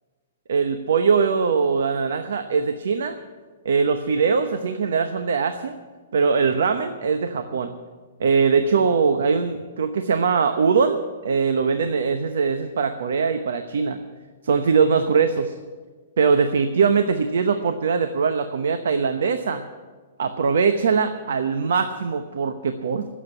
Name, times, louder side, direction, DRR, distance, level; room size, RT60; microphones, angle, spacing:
voice 1, 0.5-3.2 3.6-5.7 6.1-7.7 8.2-14.0 14.4-15.5 16.2-19.6 20.2-23.1, right 5 dB, 75° right, 8 dB, 0.9 m, -21 dB
16.0 x 7.4 x 9.9 m, 1.4 s
hypercardioid pair, 170°, 0 cm